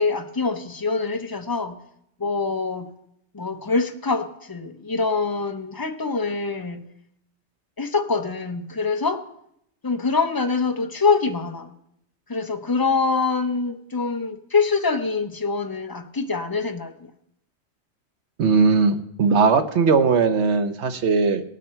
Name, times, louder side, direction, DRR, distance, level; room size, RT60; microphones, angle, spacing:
voice 1, 0.0-1.8 2.2-2.9 3.3-6.9 7.8-9.2 9.8-11.7 12.3-16.9, left 4 dB, 20° left, 3 dB, 0.8 m, -24 dB
voice 2, 18.4-21.4, right 4 dB, 80° right, 8 dB, 1.1 m, -19 dB
19.0 x 6.4 x 4.4 m, 0.76 s
omnidirectional pair, 1.2 m